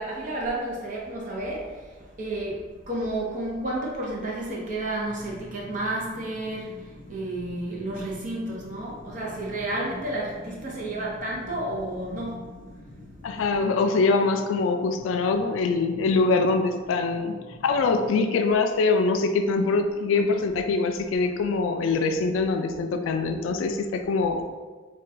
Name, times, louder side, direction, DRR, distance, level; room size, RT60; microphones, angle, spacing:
voice 1, 0.0-12.5, right 1 dB, 40° right, -4 dB, 0.7 m, -31 dB
sound 1, 5.1-18.1, left 1 dB, 35° left, 0.6 m, -46 dB
voice 2, 13.2-17.4 17.6-24.4, left 3 dB, 85° left, 6 dB, 0.3 m, -23 dB
2.4 x 2.2 x 3.8 m, 1.4 s
head